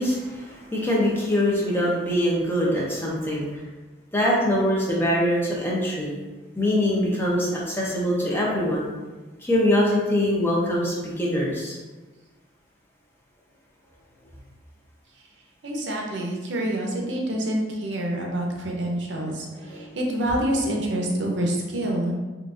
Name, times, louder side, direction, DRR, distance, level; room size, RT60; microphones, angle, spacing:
voice 1, 0.0-3.5 4.1-6.1 6.6-8.9 9.4-11.8 19.2-19.3 19.6-19.9, left 1 dB, 10° left, -5 dB, 0.6 m, -23 dB
voice 2, 15.6-22.1, right 1 dB, 70° right, 0 dB, 0.6 m, -27 dB
3.8 x 2.4 x 2.4 m, 1.3 s
head